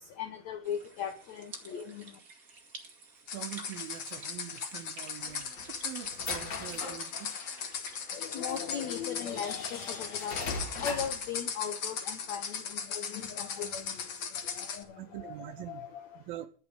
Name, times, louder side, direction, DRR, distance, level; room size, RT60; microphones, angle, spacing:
voice 1, 0.2-2.0 8.1-16.2, left 8 dB, 85° left, 1.5 m, -39 dB
sound 1, 0.6-11.4, right 3 dB, 40° right, 1.2 m, -52 dB
sound 2, 3.3-14.8, left 6 dB, 55° left, 1.4 m, -38 dB
voice 2, 3.3-7.4 15.0-15.9 16.2-16.5, right 14 dB, 75° right, 2.3 m, -44 dB
sound 3, 5.2-7.7 8.5-8.6 9.2-11.3, left 3 dB, 40° left, 1.8 m, -40 dB
11.5 x 7.0 x 8.7 m
omnidirectional pair, 4.7 m